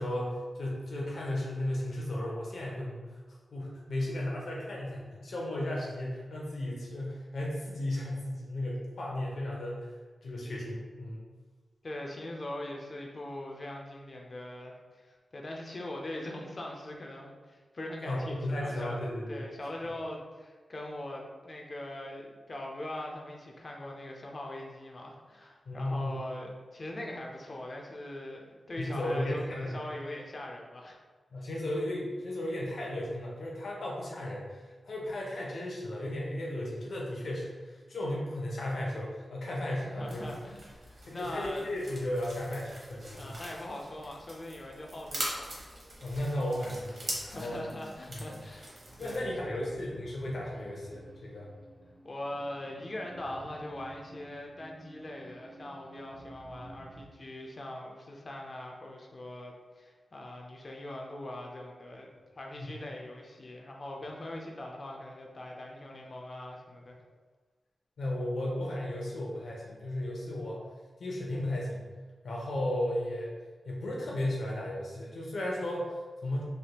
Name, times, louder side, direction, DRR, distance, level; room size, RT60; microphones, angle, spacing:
voice 1, 0.0-9.9 10.2-11.2 18.0-19.5 25.7-26.2 28.8-29.8 31.3-40.3 41.1-43.4 46.0-47.6 48.1-48.4 49.0-51.5 62.6-62.7 68.0-70.6 71.0-71.9 72.2-73.3 73.6-76.4, left 1 dB, 75° left, -3 dB, 0.7 m, -35 dB
voice 2, 11.8-19.0 19.3-31.0 39.8-41.7 43.2-45.7 47.2-49.7 52.0-62.1 62.3-67.0, left 1 dB, 40° left, 0 dB, 0.4 m, -41 dB
sound 1, 40.0-49.2, right 1 dB, 45° right, 0.8 m, -43 dB
sound 2, 48.5-57.1, right 2 dB, 25° right, 0.4 m, -51 dB
3.3 x 2.2 x 2.8 m, 1.4 s
wide cardioid pair, 120°, 0 cm